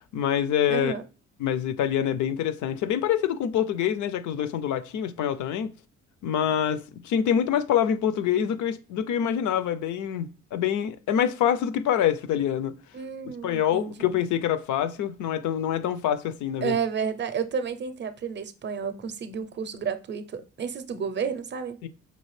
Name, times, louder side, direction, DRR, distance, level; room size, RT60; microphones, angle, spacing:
voice 1, 0.1-0.9 1.4-5.7 6.2-12.7 13.4-16.8 21.8-21.9, left 9 dB, 75° left, 0.5 m, -26 dB
voice 2, 0.7-1.0 12.9-14.1 16.6-21.8, right 6 dB, 40° right, 0.5 m, -31 dB
5.3 x 2.4 x 3.2 m
cardioid pair, 90°, 30 cm